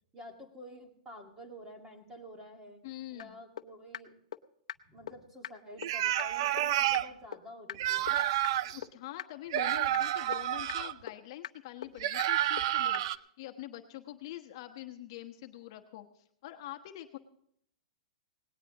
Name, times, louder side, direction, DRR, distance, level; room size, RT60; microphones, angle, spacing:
voice 1, 0.1-2.8 3.1-4.1 4.9-8.2, equal, 10° right, 3 dB, 2.0 m, -49 dB
voice 2, 2.8-3.4 8.7-17.2, left 14 dB, 40° left, 4 dB, 1.2 m, -45 dB
sound 1, 3.2-3.3 3.6-3.7 3.9-4.0 4.3-4.4 4.7-4.8 5.1-5.2 5.4-5.5 5.8-5.9 6.2-6.3 6.6-6.7 6.9-7.0 7.3-7.4 7.7-7.8 8.1-8.2 8.4-8.5 8.8-8.9 9.2-9.3 9.6-9.7 9.9-10.0 10.3-10.4 10.7-10.8 11.1-11.2 11.4-11.5 11.8-11.9 12.2-12.3 12.6-12.7 12.9-13.0, left 10 dB, 80° left, 0.8 m, -38 dB
sound 2, 5.8-7.1 7.7-8.8 9.5-10.9 12.0-13.2, right 13 dB, 45° right, 0.5 m, -30 dB
18.5 x 18.0 x 3.0 m, 0.70 s
supercardioid pair, 170°, 3 cm